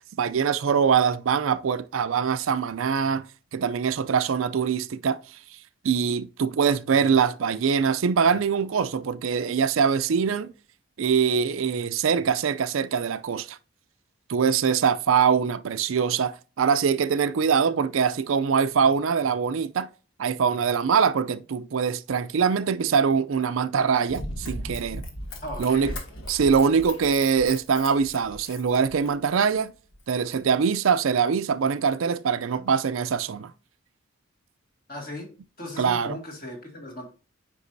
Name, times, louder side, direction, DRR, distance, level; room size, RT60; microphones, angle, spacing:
voice 1, 0.2-3.3 3.5-5.2 5.8-10.5 11.0-13.6 14.3-19.9 20.2-25.0 25.6-25.9 26.3-29.7 30.1-33.5 35.8-36.2, right 6 dB, 70° right, 0.4 m, -23 dB
Run, 24.1-29.4 29.9-30.0, left 1 dB, 70° left, 1.4 m, -37 dB
voice 2, 25.4-26.0 34.9-35.3 35.6-37.1, left 1 dB, 45° left, 2.1 m, -37 dB
8.1 x 5.2 x 2.6 m
head